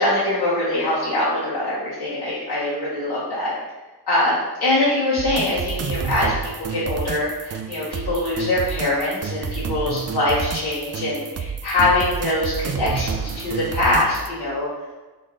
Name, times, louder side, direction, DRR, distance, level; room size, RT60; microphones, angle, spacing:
voice 1, 0.0-3.5 4.1-14.7, left 1 dB, 65° left, -9 dB, 1.2 m, -23 dB
sound 1, 5.2-14.3, right 6 dB, 40° right, 0.4 m, -29 dB
4.1 x 3.3 x 3.7 m, 1.2 s
cardioid pair, 60°, 43 cm